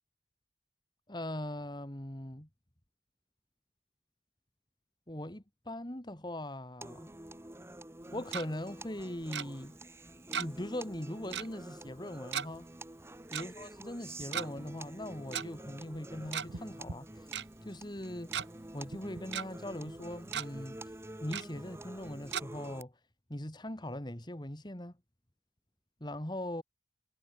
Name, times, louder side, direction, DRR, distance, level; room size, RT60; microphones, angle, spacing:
voice 1, 1.1-2.5 5.1-7.1 8.1-9.8 10.4-12.7 13.3-17.3 17.6-18.3 18.7-20.8 21.2-23.0 23.3-24.9 26.0-26.6, left 1 dB, 25° left, 2.3 m, -40 dB
sound 1, 6.8-22.8, right 1 dB, 15° right, 1.3 m, -48 dB
Tick-tock, 8.0-8.4 9.3-9.4 10.3-10.7 10.9-11.0 11.3-11.5 12.3-12.5 13.3-13.4 14.2-14.5 15.3-15.4 16.2-16.6 16.9-17.0 17.3-17.4 18.0-18.4 18.9-19.4 19.9-20.0 20.3-20.5 21.3-21.4 22.3-22.4, right 7 dB, 80° right, 1.8 m, -36 dB
head